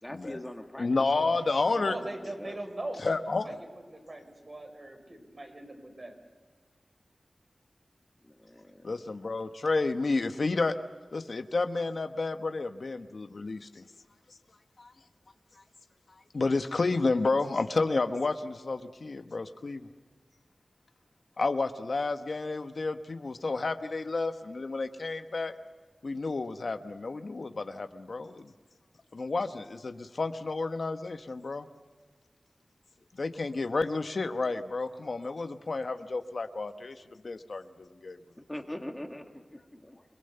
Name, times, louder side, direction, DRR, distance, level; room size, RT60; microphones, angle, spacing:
voice 1, 0.0-0.9 1.2-2.6 8.2-9.1 38.5-40.0, left 1 dB, 15° left, 4 dB, 2.1 m, -43 dB
voice 2, 0.8-1.9 3.0-3.4 8.8-10.8 11.1-13.8 14.8-14.9 16.3-19.8 21.4-25.5 26.0-28.5 29.1-31.7 33.2-37.0 37.2-37.6 38.0-38.2, left 3 dB, 65° left, 8 dB, 1.1 m, -30 dB
voice 3, 1.8-3.6 3.9-6.1 39.7-39.8, right 1 dB, 45° right, 3 dB, 5.3 m, -41 dB
28.5 x 20.0 x 6.8 m, 1.5 s
wide cardioid pair, 75°, 0 cm